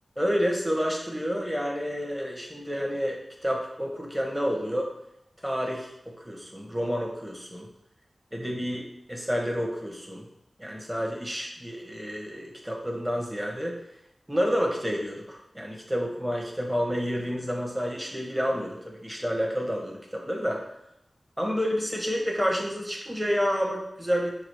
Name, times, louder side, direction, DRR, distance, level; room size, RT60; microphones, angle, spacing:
voice 1, 0.2-4.9 5.4-7.7 8.3-10.2 10.6-13.8 14.3-20.6 21.4-24.4, equal, 10° right, -1 dB, 0.9 m, -29 dB
4.8 x 2.4 x 4.7 m, 0.80 s
wide cardioid pair, 75°, 0 cm